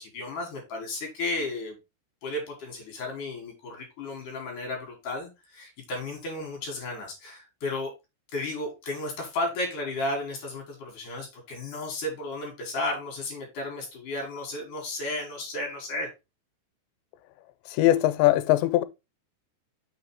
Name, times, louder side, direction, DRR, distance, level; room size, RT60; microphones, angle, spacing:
voice 1, 0.0-1.8 2.2-7.9 8.3-16.1, left 2 dB, 55° left, 3.1 m, -33 dB
voice 2, 17.7-18.8, left 15 dB, 90° left, 2.8 m, -21 dB
6.4 x 4.8 x 4.7 m
omnidirectional pair, 5.0 m